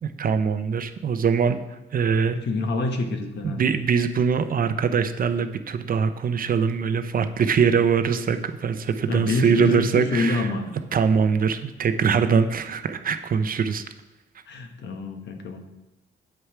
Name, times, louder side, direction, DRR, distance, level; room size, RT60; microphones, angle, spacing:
voice 1, 0.0-2.4 3.4-10.5 10.9-13.8, right 6 dB, 45° right, 10 dB, 0.7 m, -22 dB
voice 2, 2.3-3.6 9.1-10.7 14.5-15.6, left 3 dB, 60° left, 5 dB, 1.3 m, -27 dB
7.9 x 6.5 x 4.7 m, 0.99 s
cardioid pair, 90°, 20 cm